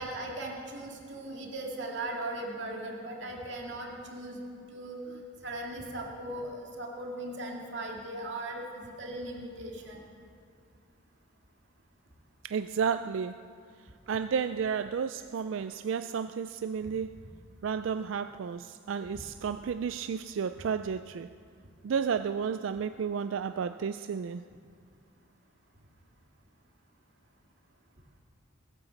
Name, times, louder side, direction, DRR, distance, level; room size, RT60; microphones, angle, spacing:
voice 1, 0.0-4.4 4.7-5.2 5.4-10.0 19.1-19.2, right 1 dB, 60° right, -1 dB, 2.5 m, -38 dB
voice 2, 12.4-13.4 14.1-17.1 17.6-21.3 21.8-24.4, right 6 dB, 75° right, 10 dB, 0.4 m, -32 dB
19.5 x 9.2 x 7.1 m, 2.2 s
head